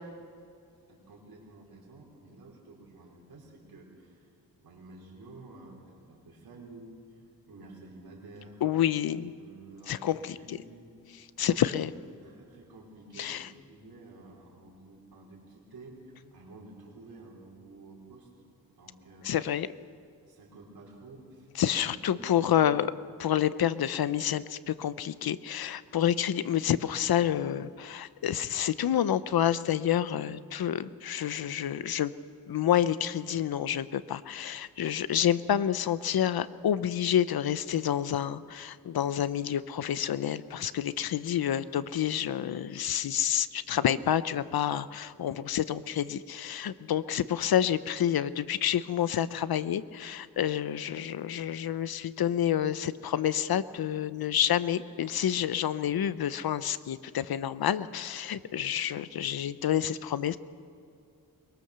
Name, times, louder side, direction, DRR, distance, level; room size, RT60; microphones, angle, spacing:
voice 1, 0.9-4.3 4.6-8.6 9.3-10.9 11.3-11.9 12.2-18.3 18.7-19.3 20.3-21.5 21.7-22.8, right 2 dB, 90° right, -2 dB, 4.6 m, -51 dB
voice 2, 8.6-9.3 9.9-10.6 11.4-11.9 13.2-13.5 19.2-19.7 21.6-22.9 23.2-32.1 32.5-60.4, left 10 dB, 85° left, 15 dB, 0.8 m, -28 dB
23.5 x 21.5 x 6.8 m, 2.4 s
wide cardioid pair, 150°, 36 cm